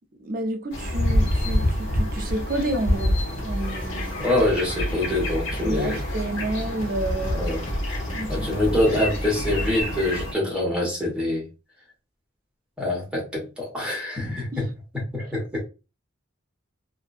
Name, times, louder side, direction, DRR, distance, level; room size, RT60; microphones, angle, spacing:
voice 1, 0.2-4.2 5.6-7.5 8.1-8.5 14.5-14.7, right 1 dB, 45° right, 0.5 m, -30 dB
sound 1, 0.7-10.3, left 1 dB, 65° left, 1.0 m, -27 dB
sound 2, 3.0-9.8, equal, 40° left, 1.0 m, -33 dB
voice 2, 4.2-6.0 7.3-7.6 8.3-11.4 12.8-14.7 15.1-15.6, left 1 dB, 5° right, 1.2 m, -25 dB
2.7 x 2.6 x 2.4 m
head